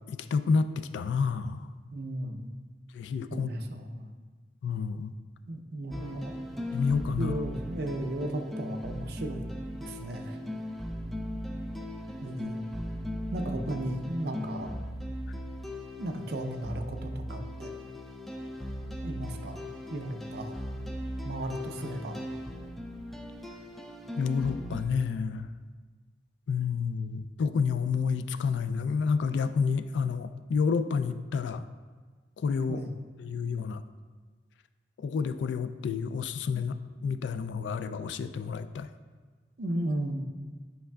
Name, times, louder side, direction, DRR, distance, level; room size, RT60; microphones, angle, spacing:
voice 1, 0.1-1.7 2.9-3.5 4.6-5.1 6.7-7.4 24.2-25.5 26.5-31.7 32.4-32.8 33.2-33.8 35.0-38.9, left 5 dB, 85° left, 13 dB, 0.3 m, -29 dB
voice 2, 1.9-2.5 3.3-4.1 5.5-6.3 7.2-9.6 9.8-10.4 12.2-12.7 13.3-14.7 16.0-17.7 19.0-19.6 19.9-20.6 21.2-22.2 32.7-32.9 39.6-40.2, right 1 dB, 60° right, 5 dB, 0.6 m, -35 dB
sound 1, 5.9-24.8, left 1 dB, ahead, 0.4 m, -38 dB
9.9 x 5.4 x 2.3 m, 1.4 s
head